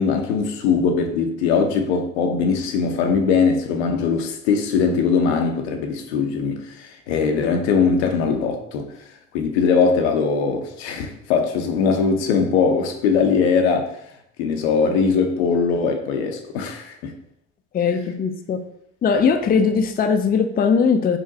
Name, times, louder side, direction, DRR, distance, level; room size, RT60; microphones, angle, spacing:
voice 1, 0.0-8.9 9.3-14.0 14.4-17.1, left 5 dB, 80° left, 0.7 m, -21 dB
voice 2, 17.7-18.6 19.0-21.2, left 5 dB, 30° left, 0.5 m, -19 dB
4.3 x 3.9 x 2.8 m
hypercardioid pair, 70°, 32 cm